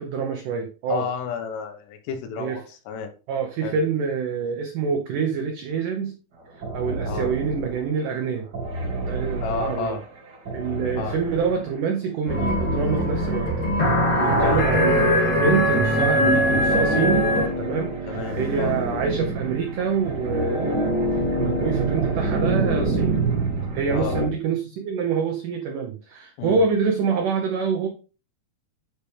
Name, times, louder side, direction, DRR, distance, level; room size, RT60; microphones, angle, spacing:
voice 1, 0.0-1.1 2.4-2.6 3.3-6.1 6.7-8.5 9.0-10.0 10.5-13.5 14.1-20.9 21.4-23.3 23.7-27.9, right 5 dB, 75° right, 4 dB, 1.9 m, -26 dB
voice 2, 0.9-3.1 3.6-3.8 7.0-7.3 9.4-10.0 11.0-11.2 14.4-14.6 18.1-18.8 23.9-24.2 26.4-26.6, left 6 dB, 85° left, 6 dB, 3.3 m, -31 dB
sound 1, 6.6-7.9 8.5-11.8 12.4-13.8 14.3-15.7 16.2-24.3, right 2 dB, 55° right, 1.1 m, -27 dB
sound 2, 12.3-17.5, equal, 55° left, 4.2 m, -21 dB
9.4 x 4.9 x 3.3 m, 0.34 s
omnidirectional pair, 4.8 m